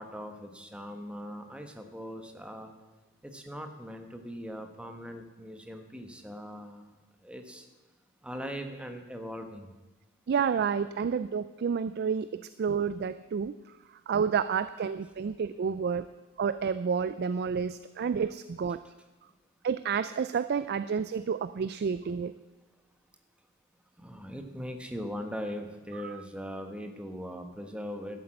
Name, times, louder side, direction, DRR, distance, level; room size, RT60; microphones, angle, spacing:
voice 1, 0.0-2.7 3.2-6.9 7.2-7.7 8.2-9.7 24.0-28.2, equal, 5° right, 5 dB, 1.0 m, -40 dB
voice 2, 10.3-13.5 14.1-16.1 16.4-18.8 19.6-22.3 26.0-26.2, right 6 dB, 45° right, 14 dB, 0.3 m, -30 dB
12.0 x 8.3 x 7.6 m, 1.2 s
head